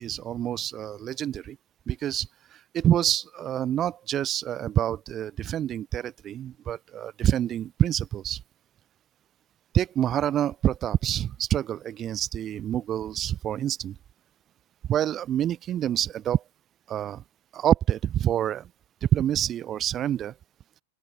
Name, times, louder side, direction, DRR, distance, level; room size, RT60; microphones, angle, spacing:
voice 1, 0.0-1.6 1.9-8.4 9.7-13.9 14.9-16.4 16.9-17.2 17.5-18.7 19.0-20.3, right 11 dB, 30° right, 2.8 m, -27 dB
open air
hypercardioid pair, 110°, 0 cm